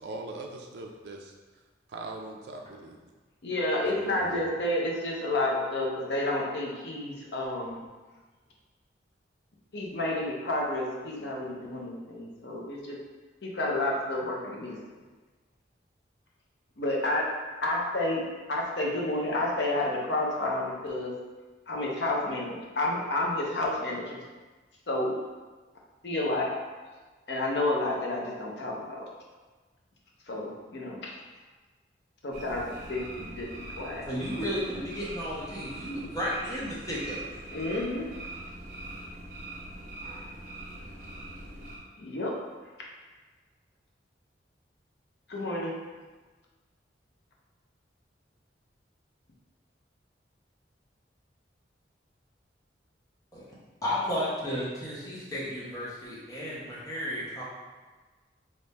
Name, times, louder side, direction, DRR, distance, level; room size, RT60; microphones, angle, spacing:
voice 1, 0.0-1.3 1.9-3.0 4.0-4.4, right 2 dB, 65° right, 1 dB, 0.4 m, -41 dB
voice 2, 3.4-7.8 9.7-13.0 13.4-14.8 16.8-17.2 17.6-18.2 18.5-21.1 21.7-24.2 24.9-25.1 26.0-26.5 27.3-29.0 30.2-31.1 32.2-34.0 37.5-38.1 42.0-42.3 45.3-45.7, left 2 dB, 65° left, -2 dB, 0.7 m, -30 dB
sound 1, 32.3-41.8, right 2 dB, 45° right, 0.8 m, -42 dB
voice 3, 34.1-37.2 53.3-53.4 53.8-57.4, equal, 20° left, -7 dB, 0.8 m, -33 dB
3.5 x 2.6 x 4.1 m, 1.3 s
head